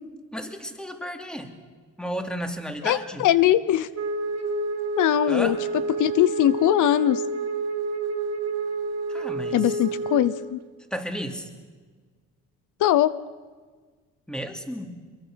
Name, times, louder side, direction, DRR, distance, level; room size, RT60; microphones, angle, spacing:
voice 1, 0.3-1.5 2.0-3.3 5.3-5.6 9.1-9.8 10.9-11.5 14.3-15.0, equal, 5° left, 5 dB, 2.8 m, -33 dB
voice 2, 2.8-3.9 5.0-5.6 6.0-7.2 9.5-10.6 12.8-13.1, left 12 dB, 80° left, 16 dB, 0.8 m, -21 dB
Wind instrument woodwind instrument, 3.9-10.4, right 3 dB, 60° right, 2.9 m, -29 dB
24.5 x 22.5 x 6.3 m, 1.5 s
cardioid pair, 90°, 30 cm